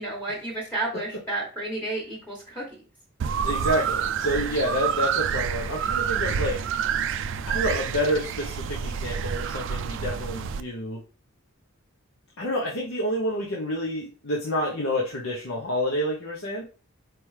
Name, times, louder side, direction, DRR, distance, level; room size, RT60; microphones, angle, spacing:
voice 1, 0.0-2.6, right 2 dB, 10° left, -4 dB, 1.1 m, -31 dB
sound 1, 3.2-10.6, right 7 dB, 65° right, 0.4 m, -28 dB
voice 2, 3.4-6.6 7.5-11.0 12.4-16.6, equal, 75° left, -3 dB, 0.9 m, -28 dB
4.7 x 3.4 x 3.2 m, 0.36 s
head